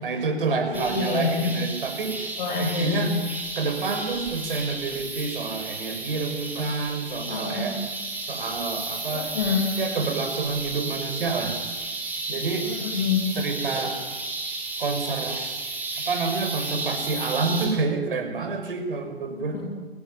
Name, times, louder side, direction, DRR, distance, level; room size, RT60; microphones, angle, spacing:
voice 1, 0.0-2.3 2.6-3.1 3.6-7.8 8.3-9.3 9.8-11.6 12.3-12.7 13.4-14.0 14.8-15.5 16.0-19.6, right 4 dB, 55° right, 6 dB, 6.3 m, -28 dB
voice 2, 0.7-1.5 2.4-3.1 7.3-7.7 9.1-9.6 12.6-13.3 19.3-19.7, left 5 dB, 50° left, -1 dB, 7.3 m, -27 dB
sound 1, 0.7-17.7, right 2 dB, 5° right, 5.3 m, -33 dB
29.5 x 18.5 x 9.3 m, 1.3 s
figure-of-eight pair, 130°, 31 cm